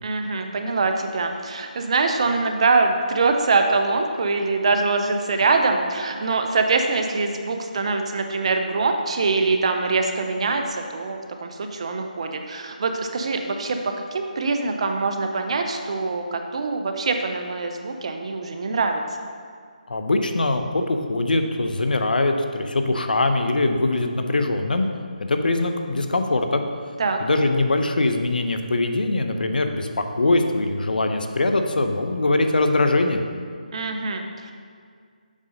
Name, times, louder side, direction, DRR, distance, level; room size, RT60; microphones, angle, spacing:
voice 1, 0.0-13.8 14.1-19.3 27.0-27.2 33.7-34.5, right 3 dB, 45° right, 5 dB, 0.6 m, -23 dB
voice 2, 19.9-24.9 25.3-26.6 27.2-33.2, left 2 dB, 80° left, 6 dB, 0.7 m, -22 dB
7.4 x 3.8 x 5.1 m, 2.1 s
figure-of-eight pair, 165°, 5 cm